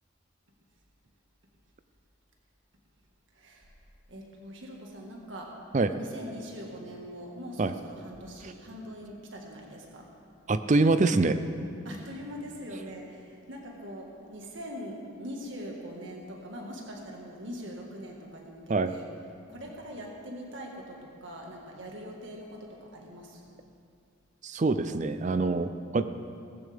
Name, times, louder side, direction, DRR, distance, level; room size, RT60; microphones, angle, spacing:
voice 1, 3.3-3.8 4.1-10.1 11.8-19.1 19.5-23.5, equal, 65° right, -1 dB, 1.8 m, -42 dB
voice 2, 10.5-11.4 18.7-18.9 24.4-26.0, right 3 dB, 35° right, 11 dB, 0.4 m, -25 dB
18.0 x 15.0 x 3.6 m, 2.5 s
head